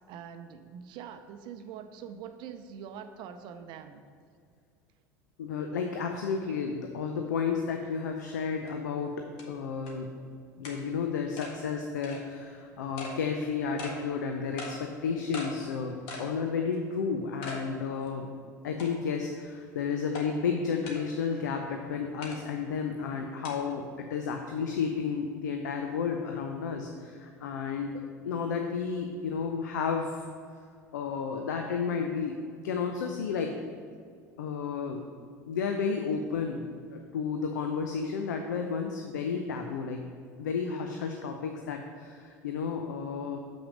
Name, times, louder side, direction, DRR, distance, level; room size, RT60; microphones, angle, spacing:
voice 1, 0.1-4.0 6.5-6.6, right 8 dB, 55° right, 8 dB, 0.6 m, -44 dB
voice 2, 5.4-10.1 10.6-18.3 18.6-30.3 30.9-32.4 32.6-33.5 34.4-35.0 35.5-36.6 36.9-40.0 40.4-43.4, left 5 dB, 75° left, 4 dB, 0.6 m, -32 dB
sound 1, 8.7-8.8 9.4-9.5 9.9-10.0 10.6-10.8 11.4-11.5 12.0-12.2 13.0-13.2 13.8-14.0 14.6-14.8 15.3-15.5 16.1-16.3 16.7-16.8 17.4-17.6 18.1-18.2 18.8-19.2 20.1-20.3 20.9-21.0 22.2-22.4 23.4-23.5, left 2 dB, 60° left, 1.6 m, -40 dB
7.2 x 5.7 x 5.2 m, 2.2 s
hypercardioid pair, 75°, 10 cm